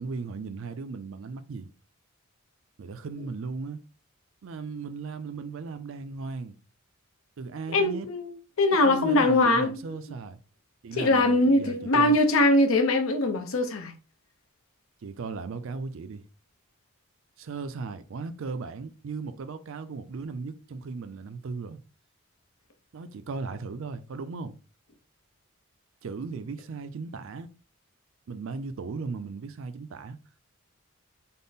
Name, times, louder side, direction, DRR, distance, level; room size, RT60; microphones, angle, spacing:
voice 1, 0.0-1.7 2.8-3.8 4.4-6.6 7.4-8.1 8.8-10.4 10.8-12.2 15.0-16.2 17.4-21.8 22.9-24.5 26.0-27.5 28.3-30.2, right 4 dB, 60° right, 0.4 m, -37 dB
voice 2, 7.7-9.8 11.0-13.9, left 2 dB, 70° left, 0.6 m, -22 dB
3.5 x 2.0 x 4.0 m
head